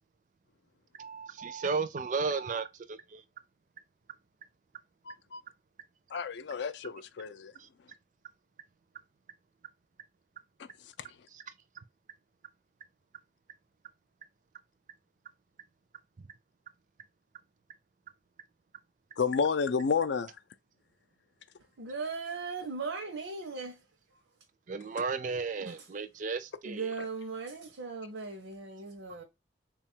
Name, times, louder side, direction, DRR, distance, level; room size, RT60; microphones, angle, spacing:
voice 1, 1.0-3.2 11.3-11.4 24.7-26.9, right 4 dB, 40° right, 0.4 m, -34 dB
voice 2, 5.1-5.4 6.1-7.5 10.6-11.1 19.2-20.4 24.9-25.0, left 5 dB, 65° left, 0.4 m, -31 dB
voice 3, 21.8-23.8 25.6-25.9 26.6-29.2, right 4 dB, 90° right, 0.7 m, -38 dB
3.6 x 2.3 x 4.3 m
head